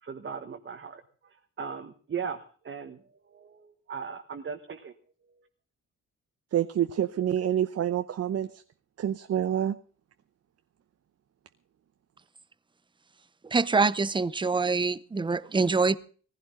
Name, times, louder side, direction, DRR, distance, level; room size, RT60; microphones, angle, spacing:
voice 1, 0.0-4.9 5.4-5.5, right 6 dB, 40° right, 1.4 m, -39 dB
voice 2, 6.5-8.5 9.0-9.7, right 10 dB, 55° right, 0.8 m, -27 dB
voice 3, 13.5-16.0, right 4 dB, 15° right, 0.7 m, -25 dB
19.5 x 15.5 x 3.8 m
cardioid pair, 130°, 30 cm